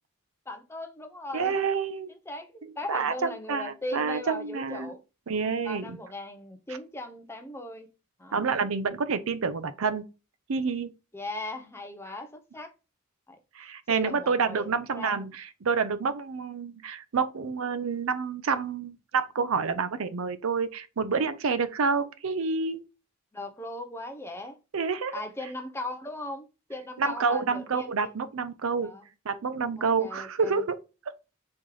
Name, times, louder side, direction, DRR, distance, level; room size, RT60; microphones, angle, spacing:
voice 1, 0.5-1.6 2.1-5.0 5.6-7.9 8.2-8.5 11.1-12.7 13.3-13.4 13.9-15.3 23.3-24.6 25.1-28.2 28.8-29.0 29.8-30.6, left 1 dB, 10° left, 0.6 m, -38 dB
voice 2, 1.3-2.1 2.9-4.9 5.3-6.0 8.3-10.0 10.5-10.9 13.6-22.8 24.7-25.1 27.0-28.9 29.3-30.8 31.1-31.2, right 5 dB, 70° right, 0.5 m, -28 dB
4.3 x 3.1 x 3.7 m
head